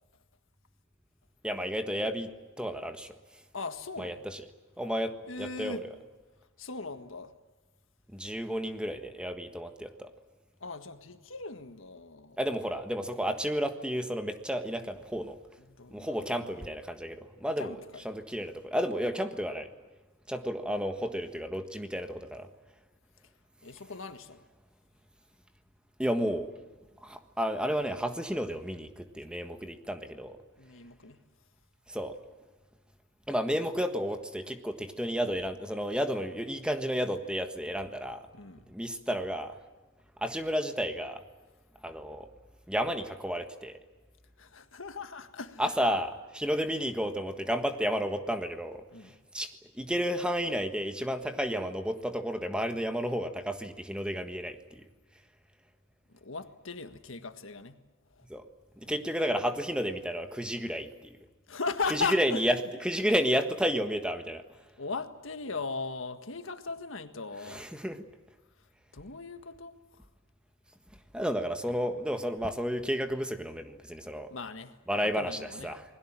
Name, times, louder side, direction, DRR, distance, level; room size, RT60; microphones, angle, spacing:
voice 1, 1.4-2.3 2.6-3.2 4.0-4.4 4.8-5.8 8.1-10.1 12.4-15.4 15.9-17.8 18.0-19.7 20.3-22.5 26.0-26.5 27.0-30.4 31.9-32.2 33.3-38.2 38.7-39.6 40.2-41.2 41.8-42.3 42.7-43.8 45.6-54.8 58.3-58.5 58.8-61.2 61.9-62.5 62.8-64.4 67.5-68.0 71.1-74.3 74.9-75.8, equal, 5° right, 1.5 m, -32 dB
voice 2, 3.5-4.2 5.3-5.9 6.6-7.3 10.6-12.4 15.7-16.7 17.6-18.0 23.6-24.4 30.6-31.2 38.3-38.7 44.4-45.7 48.9-49.2 56.1-57.8 58.1-58.3 58.8-58.9 61.5-62.4 64.8-67.7 68.9-70.1 74.3-75.8, left 4 dB, 80° left, 1.7 m, -38 dB
28.5 x 21.0 x 7.5 m
head